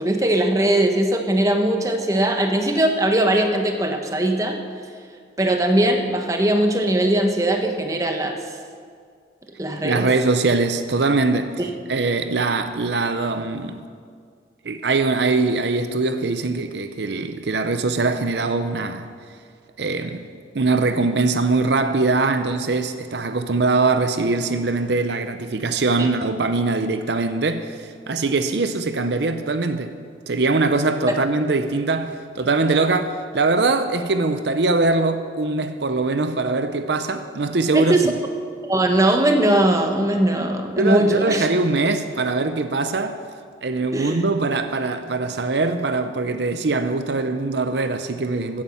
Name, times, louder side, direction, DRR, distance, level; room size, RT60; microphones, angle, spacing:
voice 1, 0.0-4.6 5.4-8.3 9.6-10.1 26.0-26.1 31.1-31.2 37.7-38.1 38.6-41.5 43.9-44.2, right 1 dB, 20° right, 1.1 m, -20 dB
voice 2, 9.8-11.6 11.9-13.8 14.6-19.1 19.8-20.2 20.5-29.9 30.3-38.1 40.8-43.2 43.6-48.6, right 3 dB, 70° right, 0.7 m, -22 dB
15.5 x 9.7 x 7.1 m
head